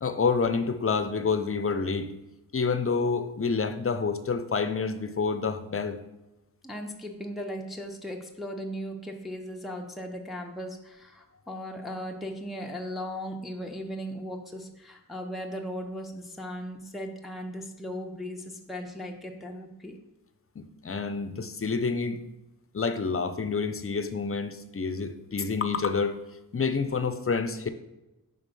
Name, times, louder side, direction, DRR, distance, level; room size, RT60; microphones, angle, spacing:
voice 1, 0.0-2.1 2.5-6.0 20.6-22.2 22.7-26.2 26.5-27.7, left 5 dB, 40° left, 9 dB, 0.6 m, -28 dB
voice 2, 6.6-20.0, equal, ahead, 1 dB, 0.6 m, -37 dB
5.4 x 3.9 x 5.3 m, 0.99 s
wide cardioid pair, 65°, 35 cm